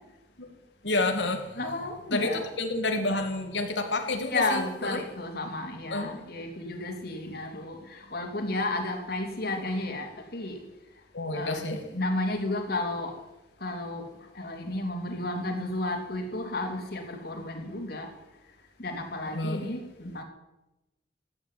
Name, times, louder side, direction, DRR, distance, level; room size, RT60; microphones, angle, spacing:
voice 1, 0.8-1.6 2.1-5.0 5.9-6.1 11.1-11.8 19.3-19.6, left 2 dB, 90° left, 5 dB, 2.2 m, -29 dB
voice 2, 1.5-2.5 4.2-10.6 11.3-11.6 11.9-13.1 13.6-14.1 14.3-18.1 18.8-20.2, left 2 dB, 60° left, 3 dB, 3.1 m, -32 dB
15.5 x 9.8 x 9.3 m, 1.0 s
head